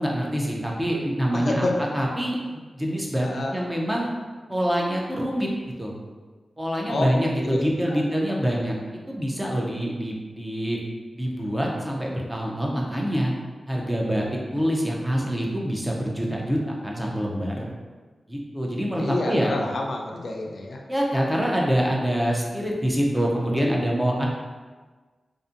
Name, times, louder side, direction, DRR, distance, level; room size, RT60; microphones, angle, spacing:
voice 1, 0.0-1.7 1.9-4.1 4.5-5.5 5.8-5.9 6.6-8.7 9.1-10.8 11.1-13.3 13.7-14.2 14.5-17.7 18.3-19.5 20.9-24.3, equal, 10° right, -2 dB, 0.5 m, -25 dB
voice 2, 1.3-1.8 3.2-3.5 6.9-7.1 7.4-7.6 7.9-8.0 8.5-8.6 19.0-20.8, left 2 dB, 65° left, 0 dB, 0.3 m, -28 dB
2.5 x 2.4 x 2.5 m, 1.4 s
cardioid pair, 70°, 0 cm